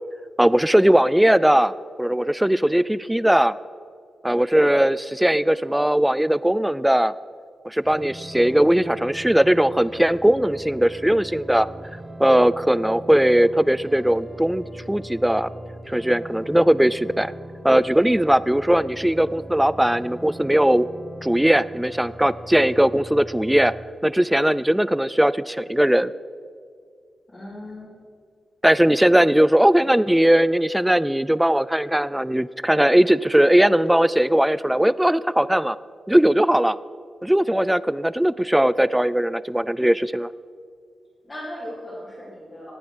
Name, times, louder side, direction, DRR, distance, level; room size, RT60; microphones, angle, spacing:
voice 1, 0.4-1.7 2.0-3.6 4.2-7.1 7.6-11.7 12.2-15.5 15.9-17.3 17.6-20.9 21.2-23.7 24.0-26.1 28.6-35.8 36.1-36.8 37.2-40.3, right 1 dB, 5° right, 18 dB, 0.3 m, -19 dB
sound 1, 7.8-23.8, right 1 dB, 25° right, 1.4 m, -40 dB
voice 2, 27.3-27.9 41.2-42.7, left 1 dB, 25° left, -10 dB, 4.2 m, -37 dB
18.0 x 8.5 x 6.2 m, 2.2 s
wide cardioid pair, 110°, 0 cm